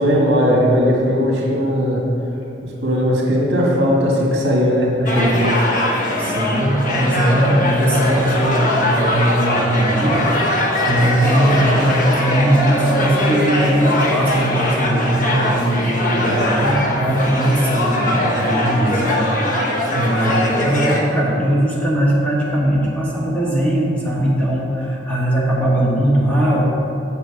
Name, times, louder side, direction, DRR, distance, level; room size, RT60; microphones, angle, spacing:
voice 1, 0.0-2.0 2.6-5.6, equal, 70° right, -3 dB, 1.8 m, -17 dB
sound 1, 5.1-21.0, left 1 dB, 45° left, 1.1 m, -21 dB
voice 2, 6.2-10.3 10.6-26.6, right 1 dB, 10° left, -6 dB, 1.6 m, -19 dB
8.0 x 6.7 x 5.1 m, 2.8 s
head